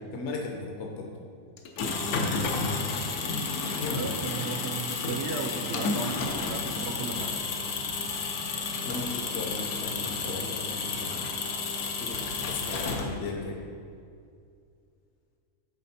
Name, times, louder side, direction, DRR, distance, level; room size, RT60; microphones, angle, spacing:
voice 1, 0.1-1.1 3.8-4.1 8.8-11.3 11.7-12.2 12.5-13.7, left 3 dB, 60° left, 2 dB, 0.9 m, -36 dB
sound 1, 1.6-13.4, left 4 dB, 85° left, 1.2 m, -31 dB
voice 2, 3.8-7.3, right 4 dB, 65° right, 4 dB, 0.7 m, -35 dB
11.0 x 4.2 x 4.1 m, 2.3 s
omnidirectional pair, 1.5 m